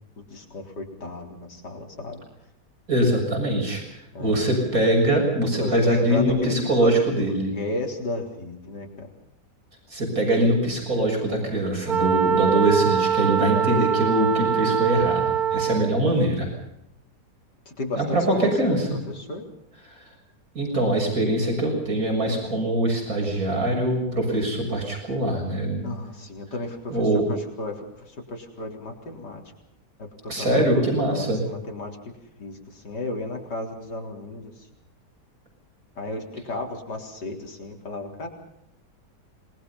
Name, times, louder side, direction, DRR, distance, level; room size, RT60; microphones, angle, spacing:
voice 1, 0.3-2.2 4.1-4.5 5.6-7.3 7.5-9.1 17.7-19.4 25.8-29.4 30.0-30.6 31.1-31.9 32.4-34.7 36.0-38.3, left 2 dB, 75° left, 2 dB, 4.4 m, -33 dB
voice 2, 2.9-3.8 4.2-7.5 9.9-16.5 18.0-19.0 19.9-20.0 20.5-25.8 26.9-27.2 30.3-31.4, right 1 dB, 55° right, 2 dB, 7.4 m, -23 dB
Wind instrument woodwind instrument, 11.9-16.0, right 7 dB, 40° right, 0.8 m, -23 dB
27.0 x 21.0 x 5.5 m, 0.78 s
omnidirectional pair, 1.8 m